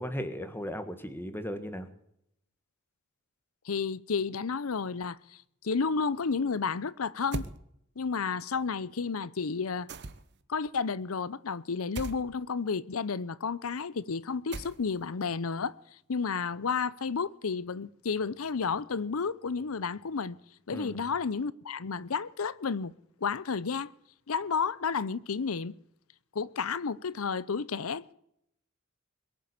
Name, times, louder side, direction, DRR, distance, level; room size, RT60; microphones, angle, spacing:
voice 1, 0.0-1.9 20.7-21.0, equal, 10° left, 1.6 m, -36 dB
voice 2, 3.7-5.2 5.6-7.4 8.0-9.9 10.5-15.7 16.1-20.4 20.7-22.9 23.2-23.9 24.3-25.7 26.3-28.1, left 5 dB, 85° left, 0.7 m, -31 dB
Dropping Plastic Brick in Grit, 7.3-7.6 9.9-10.4 11.9-12.2 14.5-15.0, right 2 dB, 55° right, 1.1 m, -37 dB
22.0 x 7.6 x 8.5 m
head